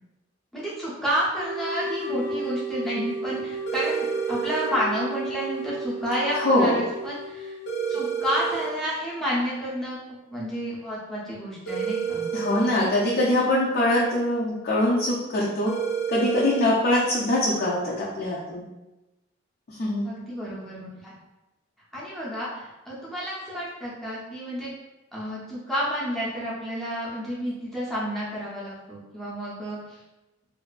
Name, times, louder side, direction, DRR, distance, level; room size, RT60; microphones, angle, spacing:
voice 1, 0.5-7.6 7.9-10.0 10.3-12.3 17.3-17.4 20.0-21.1 21.9-24.7 25.1-30.0, equal, ahead, -7 dB, 0.6 m, -30 dB
sound 1, 1.4-8.1, right 2 dB, 65° right, 0.6 m, -33 dB
sound 2, 3.7-4.7 7.7-8.7 11.7-12.7 15.7-16.7, right 7 dB, 80° left, 0.7 m, -29 dB
voice 2, 6.3-6.8 12.3-15.7 16.1-18.7 19.7-20.1, left 1 dB, 50° left, -6 dB, 0.4 m, -23 dB
2.6 x 2.3 x 2.2 m, 1.0 s
head